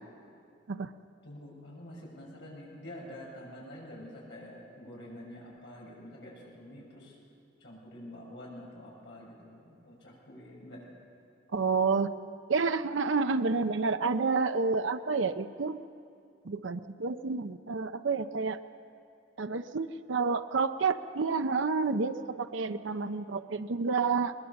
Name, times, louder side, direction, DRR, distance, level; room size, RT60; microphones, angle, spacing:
voice 1, 1.2-7.2 7.6-10.9, left 1 dB, 65° left, -3 dB, 6.8 m, -47 dB
voice 2, 11.5-12.1 12.5-15.8 16.4-18.6 19.4-24.3, right 4 dB, 85° right, 9 dB, 0.6 m, -29 dB
21.5 x 20.5 x 7.0 m, 2.5 s
head